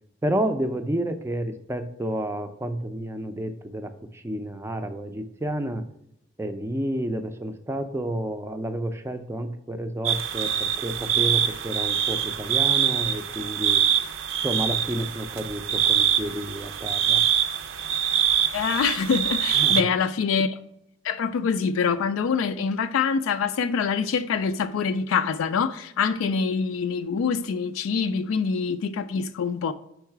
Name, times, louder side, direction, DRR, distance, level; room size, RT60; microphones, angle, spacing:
voice 1, 0.2-5.9 6.4-13.8 14.4-17.2 19.5-19.9, right 1 dB, 15° right, 0.4 m, -30 dB
sound 1, 10.0-19.8, right 9 dB, 75° right, 0.5 m, -24 dB
voice 2, 18.5-20.6 21.0-29.7, left 6 dB, 85° left, 0.3 m, -25 dB
4.7 x 4.7 x 4.5 m
head